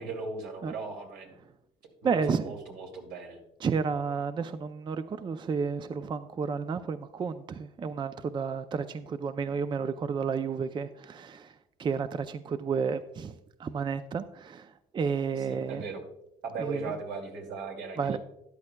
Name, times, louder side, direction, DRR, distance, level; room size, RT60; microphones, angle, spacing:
voice 1, 0.0-1.4 2.0-3.4 15.5-16.0 16.4-18.2, right 4 dB, 80° right, 2 dB, 2.4 m, -38 dB
voice 2, 2.0-2.5 3.6-15.8 16.6-17.0 18.0-18.2, right 5 dB, 25° right, 11 dB, 0.4 m, -31 dB
13.0 x 11.0 x 2.2 m, 0.84 s
cardioid pair, 110°, 17 cm